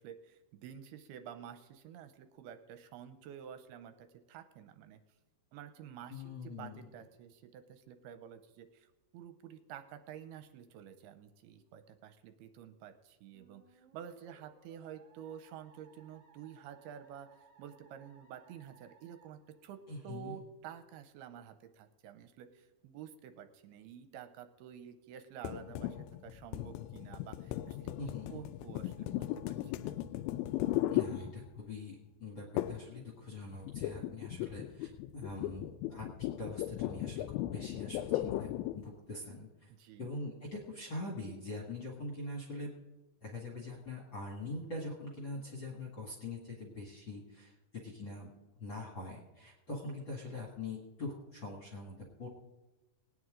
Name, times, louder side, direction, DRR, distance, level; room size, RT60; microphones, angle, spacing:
voice 1, 0.0-5.0 5.5-27.9 28.3-29.9 39.7-40.1, right 9 dB, 80° right, 8 dB, 2.5 m, -50 dB
voice 2, 6.1-6.8 19.9-20.3 28.0-28.4 30.9-39.7 40.0-42.7 43.2-48.3 48.6-52.3, left 2 dB, 45° left, -2 dB, 1.6 m, -43 dB
Musical instrument, 13.3-20.2, right 5 dB, 50° right, 1.9 m, -65 dB
sound 1, 25.4-31.8 32.6-32.9 33.2-38.9, left 14 dB, 85° left, 2.1 m, -37 dB
19.5 x 9.4 x 3.8 m, 1.1 s
omnidirectional pair, 4.8 m